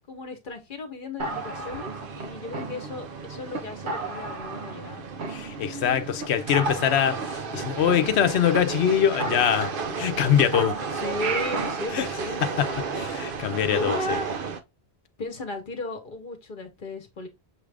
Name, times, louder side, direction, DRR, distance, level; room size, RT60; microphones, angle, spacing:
voice 1, 0.1-5.0 10.9-13.1 13.6-14.3 15.2-17.3, left 2 dB, 50° left, 1.1 m, -35 dB
sound 1, 1.2-14.6, right 5 dB, 60° right, 0.8 m, -34 dB
sound 2, 1.2-3.1 3.5-3.6 3.9-4.9 5.2-5.9 6.2-6.3 6.5-8.6 8.9-9.0 9.2-10.2 10.5-11.9, right 3 dB, 85° right, 1.1 m, -34 dB
voice 2, 5.3-9.7 10.0-10.8 11.9-12.1 12.4-14.2, left 9 dB, 85° left, 0.9 m, -23 dB
6.5 x 2.4 x 3.3 m
omnidirectional pair, 1.1 m